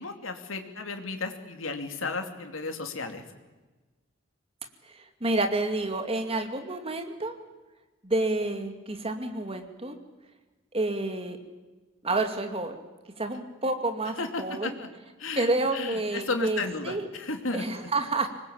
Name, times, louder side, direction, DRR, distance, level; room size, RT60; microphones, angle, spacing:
voice 1, 0.0-3.2 14.2-14.9 15.2-17.9, left 3 dB, 75° left, 5 dB, 2.8 m, -34 dB
voice 2, 5.2-7.4 8.0-9.9 10.7-11.4 12.0-12.8 13.2-14.8 15.3-17.1 17.5-18.3, right 2 dB, 30° right, 6 dB, 2.5 m, -29 dB
25.0 x 20.5 x 8.8 m, 1.2 s
head